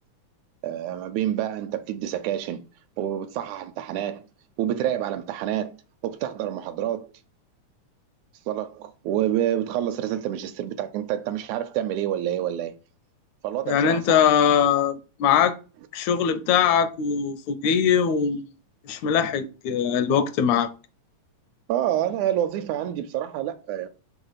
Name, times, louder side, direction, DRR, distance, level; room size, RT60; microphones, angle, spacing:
voice 1, 0.6-2.6 3.0-4.3 4.6-5.8 6.0-7.1 8.5-12.7 13.4-14.2 21.7-23.9, right 11 dB, 80° right, 1.9 m, -28 dB
voice 2, 13.7-15.6 15.9-18.5 18.9-20.7, left 8 dB, 80° left, 2.0 m, -21 dB
6.0 x 3.2 x 5.6 m
omnidirectional pair, 3.4 m